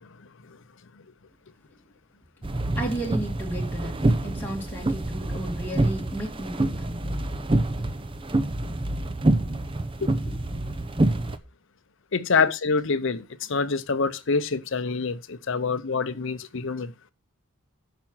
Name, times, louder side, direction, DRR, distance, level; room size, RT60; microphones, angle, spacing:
sound 1, 2.4-11.4, right 1 dB, 25° right, 0.6 m, -26 dB
voice 1, 2.8-6.9 12.4-12.5, right 1 dB, 10° left, 2.1 m, -33 dB
voice 2, 12.1-16.9, left 4 dB, 55° left, 0.7 m, -26 dB
9.1 x 5.9 x 5.6 m
head